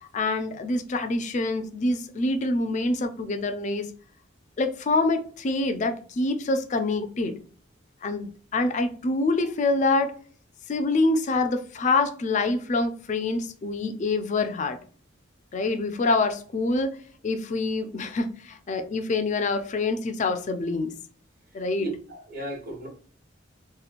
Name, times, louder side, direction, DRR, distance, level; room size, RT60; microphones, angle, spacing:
voice 1, 0.1-3.9 4.6-7.3 8.0-10.2 10.7-14.8 15.5-17.0 17.2-20.9 21.5-21.9, left 3 dB, 40° left, 0.3 m, -26 dB
voice 2, 21.8-22.9, right 1 dB, 50° right, 0.9 m, -35 dB
2.9 x 2.1 x 2.4 m
head